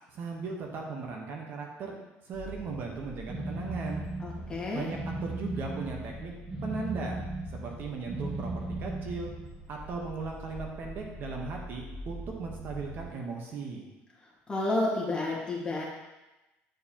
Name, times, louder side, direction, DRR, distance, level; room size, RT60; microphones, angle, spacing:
voice 1, 0.1-2.0 2.2-4.0 4.7-6.3 6.6-7.2 7.6-9.3 9.7-13.9, right 4 dB, 50° right, 0 dB, 1.1 m, -37 dB
sound 1, 2.3-13.1, right 1 dB, ahead, 1.9 m, -46 dB
sound 2, 3.3-9.6, right 2 dB, 30° right, 1.5 m, -37 dB
voice 2, 4.2-4.9 14.5-15.8, left 2 dB, 20° left, -4 dB, 1.8 m, -30 dB
9.1 x 4.5 x 2.9 m, 1.0 s
cardioid pair, 125°, 4 cm